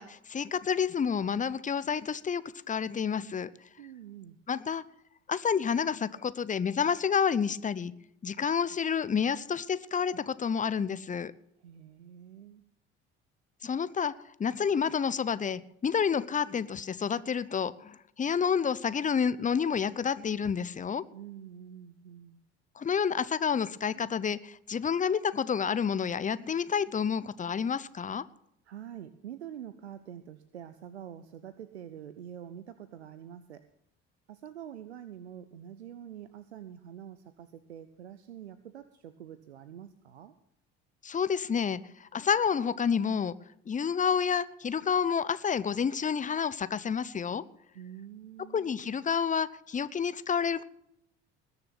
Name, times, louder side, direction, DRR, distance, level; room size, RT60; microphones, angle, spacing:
voice 1, 0.0-2.4 2.7-3.5 4.5-4.8 5.3-7.9 8.2-11.3 13.6-14.1 14.4-21.0 22.8-28.2 41.0-43.3 43.7-47.4 48.5-50.6, left 6 dB, 25° left, 16 dB, 0.8 m, -29 dB
voice 2, 3.8-4.4 11.6-12.6 21.1-22.4 28.6-33.6 34.3-40.3 47.7-48.7, right 10 dB, 90° right, 13 dB, 0.6 m, -46 dB
20.5 x 6.9 x 6.0 m, 0.75 s
hypercardioid pair, 55°, 32 cm